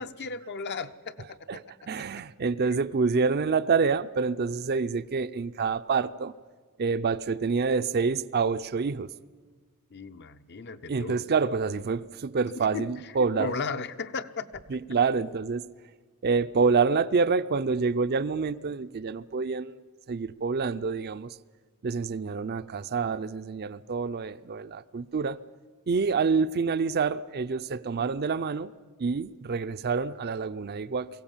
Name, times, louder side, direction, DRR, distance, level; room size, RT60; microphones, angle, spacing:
voice 1, 0.0-1.6 9.9-11.2 12.5-13.1 13.4-14.6, left 4 dB, 50° left, 0.7 m, -36 dB
voice 2, 1.5-6.3 6.8-9.1 10.9-13.5 14.7-15.7 16.2-19.8 20.1-21.4 21.8-25.4 25.9-28.7 29.0-31.1, right 5 dB, 45° right, 0.5 m, -27 dB
22.5 x 16.5 x 7.3 m
head